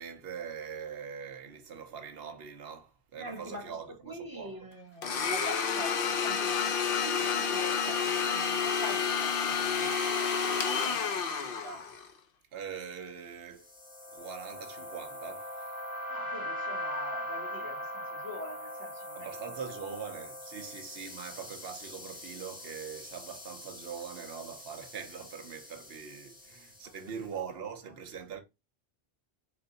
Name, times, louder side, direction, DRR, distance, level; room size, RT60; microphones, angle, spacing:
voice 1, 0.0-4.7 12.5-13.7 14.1-15.8 19.1-28.4, right 7 dB, 60° right, 1.0 m, -42 dB
voice 2, 3.2-3.8 4.0-12.0 16.1-19.6 20.6-20.7 26.8-27.3, equal, 20° right, 1.5 m, -45 dB
Domestic sounds home sounds, 5.0-12.1, left 6 dB, 55° left, 0.9 m, -30 dB
sound 1, 13.6-27.0, equal, 90° left, 1.6 m, -41 dB
4.1 x 2.6 x 3.9 m
omnidirectional pair, 1.2 m